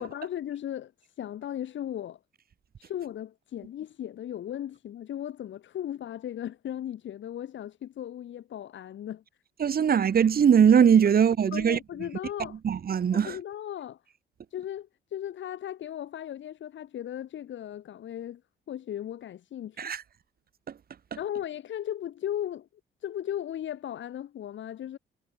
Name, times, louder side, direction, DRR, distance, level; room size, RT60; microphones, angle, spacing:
voice 1, 0.0-2.2 2.8-9.2 11.5-12.6 13.1-14.0 14.5-18.4 18.7-19.9 21.2-22.7 23.0-25.0, left 11 dB, 70° left, 7.8 m, -36 dB
voice 2, 9.6-11.8 12.6-13.4 19.8-20.0, right 8 dB, 50° right, 2.3 m, -21 dB
cardioid pair, 90°, 20 cm